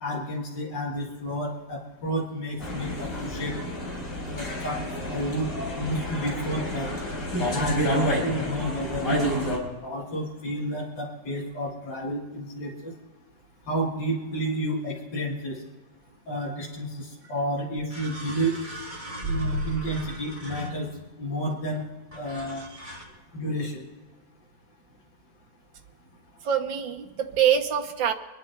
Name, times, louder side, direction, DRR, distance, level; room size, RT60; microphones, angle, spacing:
voice 1, 0.0-3.5 4.2-4.8 5.1-5.5 5.8-6.9 7.5-9.4 9.8-12.9 13.7-15.6 16.3-18.5 19.3-20.9 21.2-21.8 22.1-22.6 23.3-23.9, right 1 dB, 70° left, -5 dB, 2.6 m, -31 dB
sound 1, 2.6-9.6, equal, 45° left, 4.4 m, -29 dB
sound 2, 17.2-17.3 17.9-21.1 22.1-23.0, left 1 dB, 20° right, 3.0 m, -35 dB
voice 2, 26.4-28.1, right 9 dB, 85° right, 4 dB, 1.8 m, -25 dB
26.0 x 10.5 x 4.5 m, 1.3 s
omnidirectional pair, 2.0 m